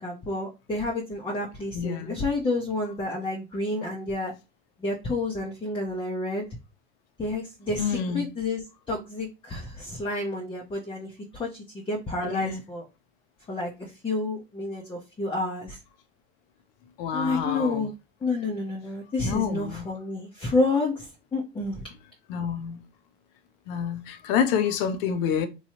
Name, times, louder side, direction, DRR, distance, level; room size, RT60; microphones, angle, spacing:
voice 1, 0.0-4.3 4.8-6.4 7.2-7.8 8.1-12.9 13.5-13.7 14.0-15.8 17.1-17.9 18.2-21.9, left 2 dB, 15° left, 0.6 m, -29 dB
voice 2, 1.7-2.2 7.8-8.3 12.2-12.6 17.0-17.9 19.2-19.9 22.3-22.8 23.7-25.5, left 7 dB, 60° left, 0.7 m, -28 dB
3.0 x 2.3 x 2.8 m
hypercardioid pair, 80°, 33 cm